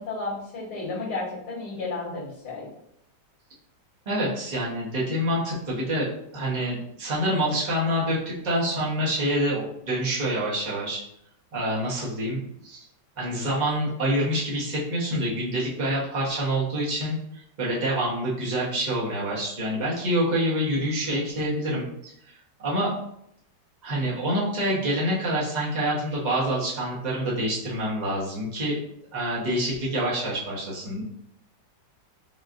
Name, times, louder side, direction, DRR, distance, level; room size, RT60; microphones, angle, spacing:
voice 1, 0.0-2.7, left 3 dB, 70° left, -9 dB, 2.4 m, -32 dB
voice 2, 4.1-6.1 6.3-11.0 11.5-12.8 13.2-22.9 23.8-28.8 29.1-31.0, equal, 30° right, -6 dB, 0.9 m, -27 dB
5.5 x 2.3 x 2.5 m, 0.76 s
omnidirectional pair, 2.0 m